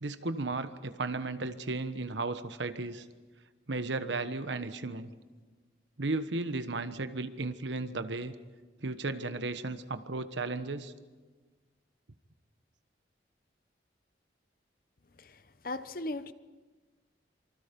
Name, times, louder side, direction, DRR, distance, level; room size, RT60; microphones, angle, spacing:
voice 1, 0.0-3.0 3.7-5.1 6.0-8.3 8.8-10.9, right 3 dB, 80° right, 10 dB, 1.2 m, -34 dB
voice 2, 15.2-16.3, left 2 dB, 50° left, 13 dB, 0.9 m, -38 dB
26.5 x 25.0 x 5.3 m, 1.3 s
head